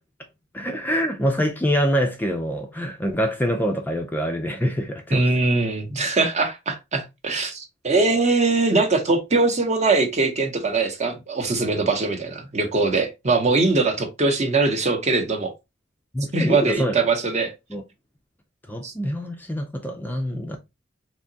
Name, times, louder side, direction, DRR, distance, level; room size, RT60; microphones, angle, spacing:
voice 1, 0.5-5.3 16.1-17.1 17.7-17.8 18.7-20.6, equal, 10° left, 0.4 m, -25 dB
voice 2, 5.1-15.5 16.3-17.5 18.8-18.9, right 3 dB, 35° right, 0.8 m, -22 dB
3.5 x 2.9 x 2.6 m
head